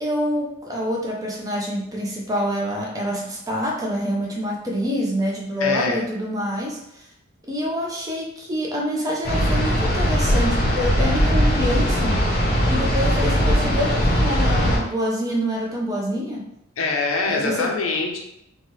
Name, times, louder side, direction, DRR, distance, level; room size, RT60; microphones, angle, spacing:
voice 1, 0.0-6.8 7.5-12.2 12.7-16.5 17.3-17.7, equal, 20° right, -2 dB, 0.5 m, -26 dB
voice 2, 5.6-6.0 16.8-18.2, left 3 dB, 80° left, 0 dB, 0.6 m, -24 dB
sound 1, 9.2-14.8, equal, 45° left, 0.7 m, -20 dB
2.8 x 2.2 x 3.1 m, 0.79 s
head